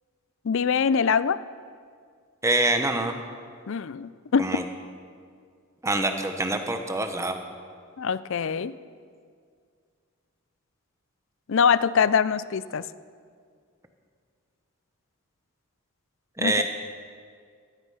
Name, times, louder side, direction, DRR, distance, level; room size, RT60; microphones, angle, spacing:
voice 1, 0.4-1.4 3.7-4.6 8.0-8.7 11.5-12.8 16.4-16.6, left 6 dB, 60° left, 16 dB, 0.4 m, -23 dB
voice 2, 2.4-3.1 4.4-4.6 5.8-7.4 16.4-16.6, right 2 dB, 15° right, 6 dB, 1.0 m, -25 dB
17.5 x 13.5 x 5.7 m, 2.1 s
head